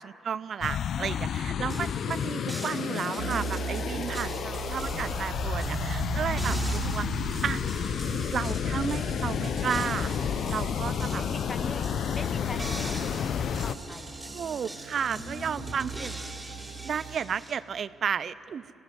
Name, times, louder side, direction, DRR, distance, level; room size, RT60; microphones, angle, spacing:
voice 1, 0.0-4.3 4.7-7.6 8.3-10.1 10.5-11.2 14.3-16.2 16.8-18.7, right 7 dB, 55° right, 16 dB, 0.4 m, -33 dB
sound 1, 0.6-13.8, left 8 dB, 65° left, 0.5 m, -31 dB
sound 2, 1.7-17.5, right 1 dB, 10° right, 3.2 m, -42 dB
sound 3, 3.2-17.2, right 6 dB, 90° right, 1.1 m, -39 dB
voice 2, 11.2-14.7 15.1-15.8, left 3 dB, 25° left, 8 dB, 1.5 m, -43 dB
18.5 x 17.0 x 9.5 m, 2.6 s
cardioid pair, 90°, 0 cm